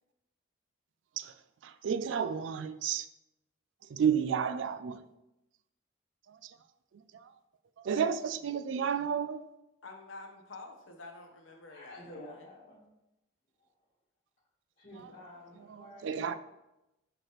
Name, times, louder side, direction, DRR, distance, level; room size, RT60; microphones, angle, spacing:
voice 1, 1.6-3.1 3.9-5.0 7.8-9.4 15.7-16.4, right 7 dB, 70° right, 0.3 m, -31 dB
voice 2, 9.8-12.5, left 3 dB, 80° left, 0.9 m, -48 dB
voice 3, 11.7-12.8 14.8-16.2, left 1 dB, 50° left, 1.5 m, -50 dB
5.9 x 5.1 x 3.1 m
head